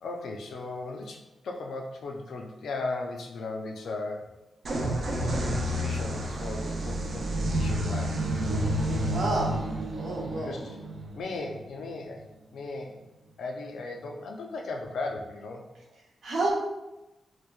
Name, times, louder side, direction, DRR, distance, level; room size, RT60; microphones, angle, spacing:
voice 1, 0.0-4.3 5.2-8.2 10.3-10.8 11.1-13.0 13.4-15.7, left 3 dB, 80° left, 2 dB, 0.4 m, -37 dB
sound 1, 4.7-12.2, right 1 dB, 60° right, 0.4 m, -30 dB
voice 2, 9.1-9.5 9.9-10.7 16.2-16.5, right 2 dB, 80° right, -4 dB, 0.8 m, -29 dB
3.1 x 2.1 x 2.3 m, 0.99 s
cardioid pair, 95°, 0 cm